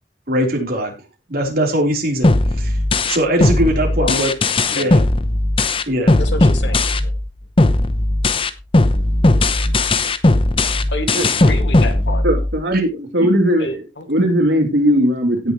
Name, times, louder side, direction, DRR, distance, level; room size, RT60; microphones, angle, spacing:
voice 1, 0.3-0.9 1.3-2.3 2.6-2.8 3.0-4.3 4.7-5.0 5.9-6.2, right 1 dB, 55° right, 3.8 m, -20 dB
sound 1, 2.2-7.3 7.6-12.6, left 2 dB, 30° left, 0.8 m, -16 dB
voice 2, 4.0-4.3 4.8-5.1 6.1-7.2 10.9-12.2 13.6-14.1, left 2 dB, 75° left, 2.2 m, -29 dB
voice 3, 12.2-13.8 14.1-15.5, equal, 85° right, 3.0 m, -17 dB
17.0 x 6.9 x 3.1 m
head